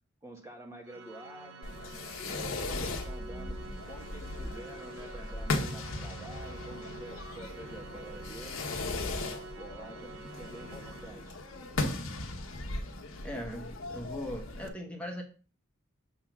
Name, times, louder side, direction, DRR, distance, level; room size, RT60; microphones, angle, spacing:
voice 1, 0.2-1.7 2.3-3.6 3.9-8.7 9.6-11.4, right 1 dB, 15° right, 0 dB, 1.2 m, -48 dB
Organ, 0.8-11.7, right 3 dB, 65° right, 0.8 m, -48 dB
Fireworks, 1.6-14.7, left 2 dB, 90° left, 1.2 m, -37 dB
voice 2, 13.2-15.2, equal, 5° left, 1 dB, 1.2 m, -39 dB
7.3 x 3.7 x 5.9 m, 0.37 s
head